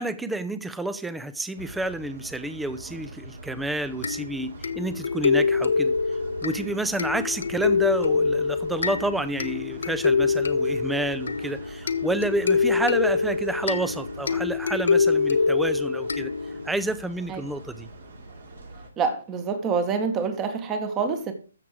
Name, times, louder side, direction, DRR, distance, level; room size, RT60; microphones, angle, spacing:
voice 1, 0.0-5.9 6.4-16.3 16.6-17.9, right 1 dB, 5° right, 0.7 m, -29 dB
sound 1, 1.6-18.9, right 2 dB, 65° right, 4.4 m, -43 dB
sound 2, 4.0-16.8, left 4 dB, 70° left, 1.0 m, -25 dB
voice 2, 19.0-21.3, right 5 dB, 20° right, 1.5 m, -26 dB
13.5 x 7.2 x 4.7 m
figure-of-eight pair, 140°, 0 cm